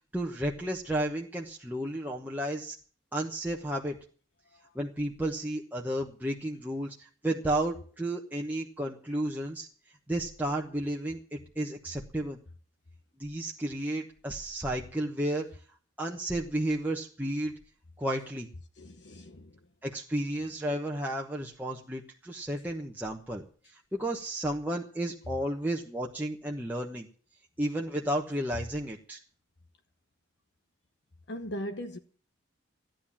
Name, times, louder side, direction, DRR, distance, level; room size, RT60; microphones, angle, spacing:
voice 1, 0.1-2.8 3.1-4.0 4.7-9.7 10.1-12.4 13.2-15.5 16.0-17.5 18.0-18.5 19.8-27.1 27.6-29.2, right 1 dB, 10° right, 1.1 m, -32 dB
voice 2, 18.8-19.6 31.3-32.0, equal, 60° left, 1.0 m, -39 dB
14.5 x 10.5 x 7.4 m
head